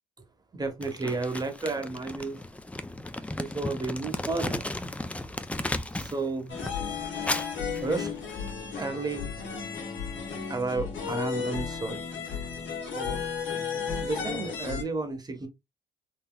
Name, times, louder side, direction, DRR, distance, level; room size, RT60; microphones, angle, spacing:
voice 1, 0.5-2.4 3.4-4.7 5.9-6.6 7.8-8.1 8.7-9.3 10.4-12.0 12.8-13.2 14.0-15.5, right 3 dB, 20° right, 0.9 m, -32 dB
Crumpling crinkling, 0.8-6.2 6.5-8.5, left 1 dB, 5° left, 0.3 m, -35 dB
sound 1, 6.5-14.8, left 6 dB, 75° left, 1.3 m, -34 dB
3.9 x 2.6 x 2.2 m
cardioid pair, 90°, 20 cm